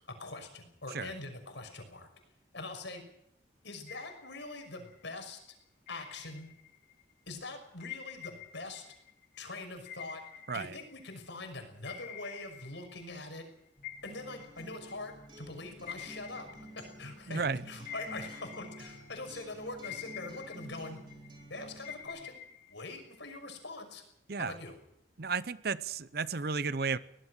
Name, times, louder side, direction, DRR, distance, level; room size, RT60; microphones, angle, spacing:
voice 1, 0.2-2.1 2.5-3.0 3.6-5.4 5.9-6.5 7.3-8.8 9.4-10.2 10.5-13.4 14.0-16.5 16.8-21.0 21.5-22.4 22.7-24.0 24.4-24.7, left 2 dB, 70° left, 5 dB, 6.0 m, -43 dB
sound 1, 3.9-5.1 5.9-7.0 7.8-11.4 11.8-13.5 13.8-17.4 17.9-19.4 19.8-21.4 21.8-23.5, left 9 dB, 40° left, 2.0 m, -48 dB
sound 2, 13.8-22.3, right 1 dB, 25° left, 5.7 m, -59 dB
Acoustic guitar, 14.1-22.1, right 1 dB, 25° right, 4.6 m, -52 dB
voice 2, 17.3-17.7 24.3-24.6 25.2-27.0, right 4 dB, 50° right, 16 dB, 0.7 m, -33 dB
23.0 x 18.5 x 6.5 m, 0.76 s
head